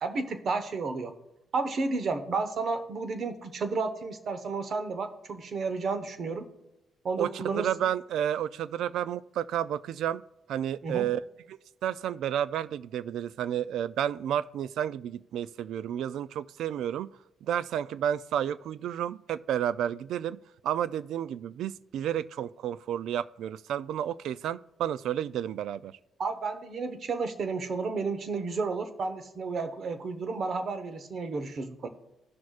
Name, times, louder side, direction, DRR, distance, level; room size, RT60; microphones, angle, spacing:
voice 1, 0.0-1.1 1.5-6.5 7.0-7.7 10.8-11.1 26.2-31.9, right 4 dB, 55° right, 1.1 m, -32 dB
voice 2, 7.2-10.2 10.5-11.2 11.5-17.1 17.4-25.9, right 10 dB, 80° right, 0.3 m, -31 dB
15.5 x 6.2 x 2.4 m
cardioid pair, 90°, 0 cm